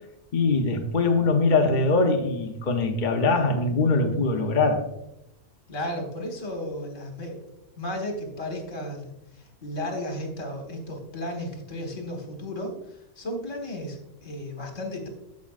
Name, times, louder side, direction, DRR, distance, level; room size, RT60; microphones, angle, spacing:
voice 1, 0.3-4.9, left 3 dB, 40° left, 3 dB, 0.8 m, -22 dB
voice 2, 5.7-7.4 7.8-15.1, left 1 dB, 60° left, 2 dB, 1.9 m, -34 dB
14.5 x 5.2 x 2.5 m, 0.87 s
omnidirectional pair, 1.5 m